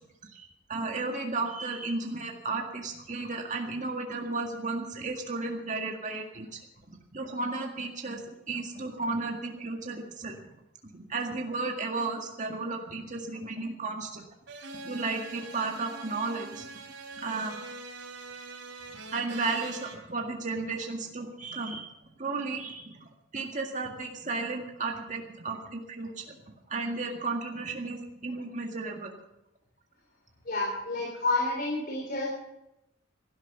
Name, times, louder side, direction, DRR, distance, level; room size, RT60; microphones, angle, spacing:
voice 1, 0.2-6.6 7.1-10.4 10.9-14.2 14.8-17.6 19.1-29.1, right 3 dB, 40° right, 2 dB, 1.9 m, -34 dB
sound 1, 14.5-19.9, right 3 dB, 65° right, 3.2 m, -43 dB
voice 2, 30.5-32.3, left 2 dB, 50° left, -2 dB, 3.8 m, -29 dB
17.0 x 12.5 x 6.1 m, 0.88 s
head